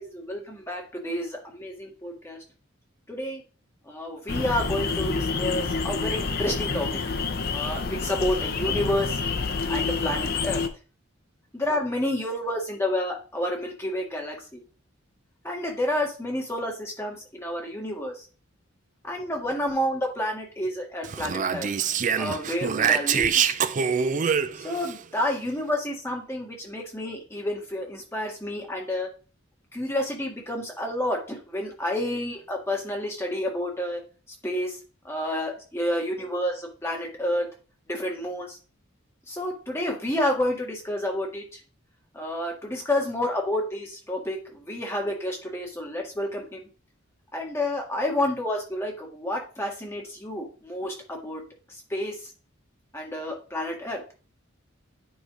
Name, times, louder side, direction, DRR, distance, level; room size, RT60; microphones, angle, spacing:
voice 1, 0.0-2.4 3.1-3.4 3.8-7.0 7.5-9.2 9.7-10.6 11.5-14.6 15.4-18.3 19.0-21.7 22.1-23.5 24.5-29.1 29.7-34.0 34.4-34.8 35.0-37.5 37.9-38.6 39.3-41.6 42.1-46.6 47.3-51.4 51.9-52.3 52.9-54.1, left 1 dB, 15° left, 0 dB, 1.8 m, -29 dB
sound 1, 4.3-10.7, left 4 dB, 50° left, 0.7 m, -28 dB
Speech, 21.0-24.9, right 7 dB, 40° right, 0.4 m, -25 dB
9.0 x 3.2 x 5.0 m, 0.36 s
head